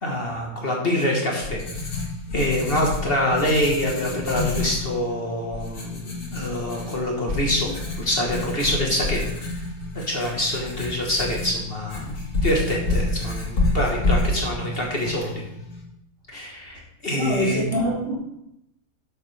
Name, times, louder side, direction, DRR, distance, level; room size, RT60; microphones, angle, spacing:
voice 1, 0.0-1.6 2.3-7.7 8.0-9.2 9.9-12.1 12.4-15.4 16.3-17.6, left 1 dB, 40° left, -1 dB, 1.6 m, -25 dB
Writing, 1.0-15.8, left 2 dB, 60° left, 2.3 m, -29 dB
voice 2, 17.1-18.2, equal, 50° right, -4 dB, 2.9 m, -24 dB
11.0 x 7.0 x 3.4 m, 0.83 s
omnidirectional pair, 1.6 m